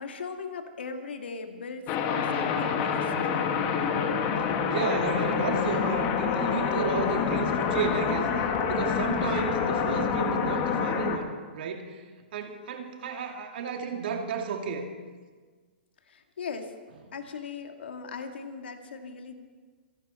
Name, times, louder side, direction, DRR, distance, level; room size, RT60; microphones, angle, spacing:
voice 1, 0.0-3.7 16.1-16.7 17.1-19.3, left 5 dB, 80° left, 5 dB, 2.2 m, -39 dB
sound 1, 1.9-11.2, left 6 dB, 35° left, 1.8 m, -27 dB
voice 2, 4.7-8.3 8.7-12.0 12.3-14.9, right 5 dB, 60° right, 3 dB, 2.6 m, -32 dB
27.0 x 11.5 x 4.4 m, 1.5 s
hypercardioid pair, 135°, 6 cm